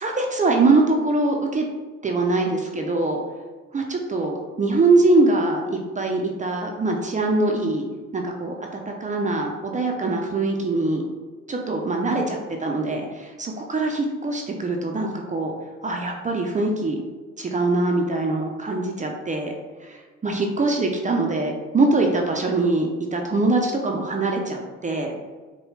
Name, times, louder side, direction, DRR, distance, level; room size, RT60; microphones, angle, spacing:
voice 1, 0.0-1.7 2.0-3.2 3.7-7.9 8.1-11.0 11.5-15.5 15.8-17.0 17.4-19.5 19.8-25.1, right 2 dB, 25° right, 1 dB, 0.5 m, -23 dB
4.7 x 2.3 x 3.2 m, 1.4 s
supercardioid pair, 65°, 30 cm